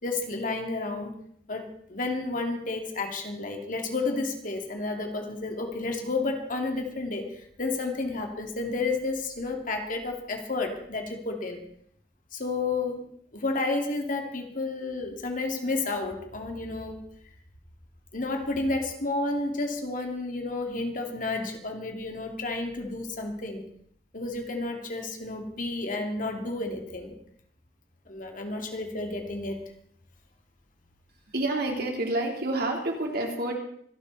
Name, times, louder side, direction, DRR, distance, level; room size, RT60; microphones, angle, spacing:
voice 1, 0.0-1.1 1.5-7.2 7.6-11.6 12.3-13.1 13.3-17.0 18.1-23.6 24.1-27.2 28.1-29.6, left 3 dB, 50° left, 3 dB, 2.6 m, -31 dB
voice 2, 31.3-33.6, right 2 dB, 60° right, 1 dB, 3.5 m, -28 dB
25.5 x 11.5 x 4.2 m, 0.65 s
head